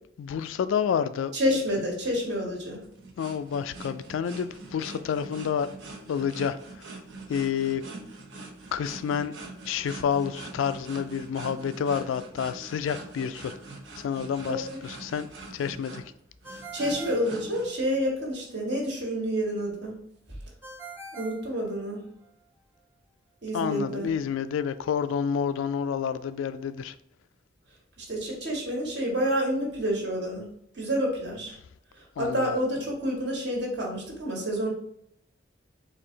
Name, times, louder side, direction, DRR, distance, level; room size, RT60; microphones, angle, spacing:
voice 1, 0.2-1.3 3.2-5.7 6.1-6.9 7.3-7.8 8.7-9.3 9.6-13.5 14.0-15.3 15.5-16.0 23.5-27.0 32.2-32.5, left 7 dB, 90° left, 0.3 m, -29 dB
voice 2, 1.3-2.8 14.5-14.8 16.7-20.0 21.1-22.0 23.4-24.1 28.0-30.4 30.7-31.5 32.0-34.7, equal, 60° right, 1.4 m, -29 dB
sound 1, 2.0-17.7, right 3 dB, 90° right, 1.1 m, -43 dB
Ringtone, 16.4-18.1 20.6-22.3, right 3 dB, 10° right, 0.4 m, -44 dB
4.3 x 2.7 x 3.8 m
head